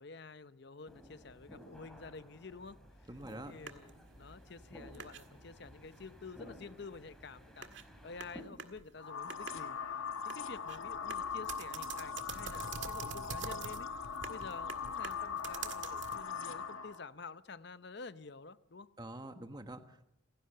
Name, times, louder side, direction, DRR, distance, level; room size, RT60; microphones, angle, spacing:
voice 1, 0.0-2.8 3.5-7.7 8.0-9.8 10.2-13.9 14.3-18.9, left 4 dB, 55° left, 0.8 m, -50 dB
sound 1, 0.9-8.4, left 1 dB, 5° left, 3.1 m, -55 dB
voice 2, 3.1-3.6 19.0-20.0, right 1 dB, 20° right, 1.3 m, -46 dB
sound 2, 3.1-16.3, right 6 dB, 60° right, 1.8 m, -48 dB
sound 3, 9.0-17.0, left 6 dB, 80° left, 1.6 m, -40 dB
28.5 x 16.0 x 6.8 m
head